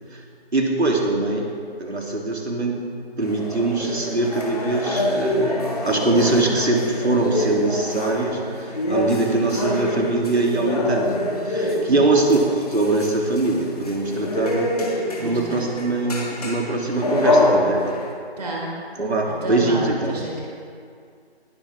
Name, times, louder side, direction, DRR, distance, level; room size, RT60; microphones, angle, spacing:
voice 1, 0.5-1.5 1.8-2.8 3.2-11.1 11.5-12.4 12.7-14.7 15.2-18.0 19.0-20.1, right 2 dB, 80° right, 0 dB, 3.0 m, -22 dB
sound 1, 3.2-18.1, left 1 dB, 35° left, 1.9 m, -25 dB
voice 2, 11.9-12.3 15.2-15.6 18.4-18.7 19.2-20.4, right 2 dB, 40° right, -4 dB, 4.2 m, -30 dB
19.0 x 14.5 x 3.5 m, 2.2 s
figure-of-eight pair, 170°, 32 cm